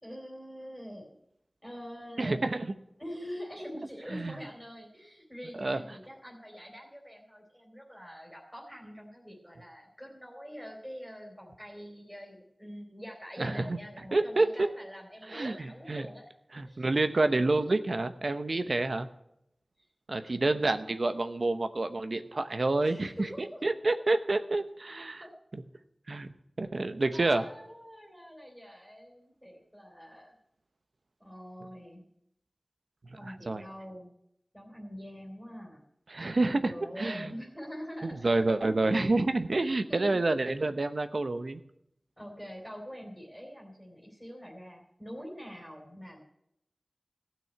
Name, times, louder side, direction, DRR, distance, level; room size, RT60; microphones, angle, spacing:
voice 1, 0.0-1.2 1.6-2.4 3.0-16.3 16.6-17.3 20.4-20.6 22.8-23.6 25.2-25.3 27.1-30.4 31.2-32.0 33.2-34.1 34.5-35.8 36.4-38.4 39.9-40.2 42.2-46.2, equal, ahead, -2 dB, 3.1 m, -45 dB
voice 2, 2.2-2.7 4.1-4.4 5.6-5.8 13.4-13.8 14.1-14.7 15.3-16.1 16.5-19.1 20.1-23.1 23.6-25.2 25.5-25.6 26.1-26.3 26.6-27.4 33.2-33.6 36.1-37.3 38.0-41.6, right 2 dB, 70° right, 9 dB, 0.8 m, -28 dB
15.0 x 6.2 x 9.4 m, 0.78 s
wide cardioid pair, 60°, 0 cm